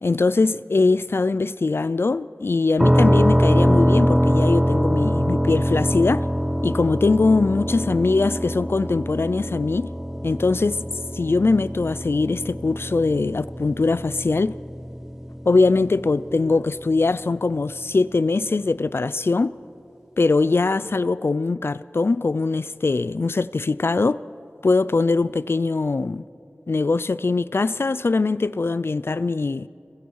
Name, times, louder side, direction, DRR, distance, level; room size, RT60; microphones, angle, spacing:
voice 1, 0.0-6.2 6.6-9.9 10.2-10.8 11.1-14.5 15.5-19.5 20.2-24.2 24.6-26.2 26.7-29.7, left 3 dB, 65° left, 0.5 m, -21 dB
sound 1, 2.8-16.5, equal, 10° right, 0.6 m, -23 dB
27.0 x 21.5 x 4.8 m
wide cardioid pair, 40°, 4 cm